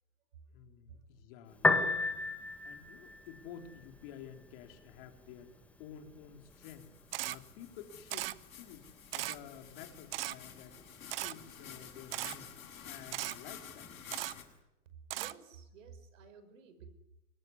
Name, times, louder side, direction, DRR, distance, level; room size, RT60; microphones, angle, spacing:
voice 1, 0.5-2.2 2.6-6.9 7.2-12.6 12.8-13.9, left 8 dB, 35° left, 5 dB, 3.9 m, -52 dB
Piano, 1.5-14.5, left 3 dB, 5° left, 1.7 m, -39 dB
sound 1, 6.5-14.4, left 8 dB, 60° left, 7.2 m, -51 dB
Camera, 7.1-7.4 8.1-8.3 9.1-9.4 10.1-10.3 11.1-11.3 12.1-12.3 13.1-13.3 14.1-14.3 15.1-15.3, right 15 dB, 40° right, 1.0 m, -37 dB
voice 2, 15.1-16.9, right 5 dB, 55° right, 11 dB, 5.5 m, -53 dB
25.5 x 21.5 x 9.8 m, 0.91 s
hypercardioid pair, 140°, 46 cm